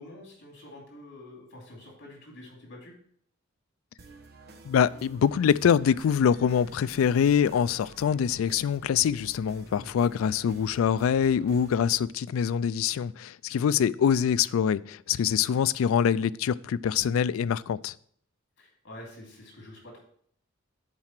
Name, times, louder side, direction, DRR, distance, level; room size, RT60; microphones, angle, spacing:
voice 1, 0.0-2.9 9.6-9.9 13.5-13.8 18.6-20.0, left 1 dB, 60° left, 2.8 m, -47 dB
sound 1, 4.0-12.0, right 2 dB, 55° right, 1.0 m, -51 dB
voice 2, 4.6-17.9, left 8 dB, 90° left, 0.3 m, -24 dB
7.4 x 4.9 x 5.9 m
head